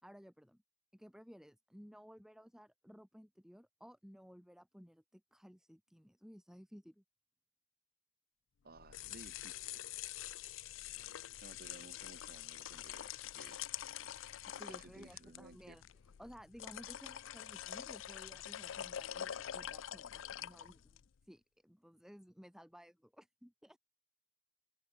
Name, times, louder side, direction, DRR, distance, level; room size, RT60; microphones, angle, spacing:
voice 1, 0.0-0.6 0.9-7.0 14.5-15.8 16.2-23.8, equal, 5° right, 4.8 m, -57 dB
voice 2, 8.6-9.8 11.4-13.6 14.5-15.8, right 2 dB, 55° right, 1.7 m, -57 dB
sound 1, 8.7-21.1, left 11 dB, 90° left, 0.5 m, -46 dB
head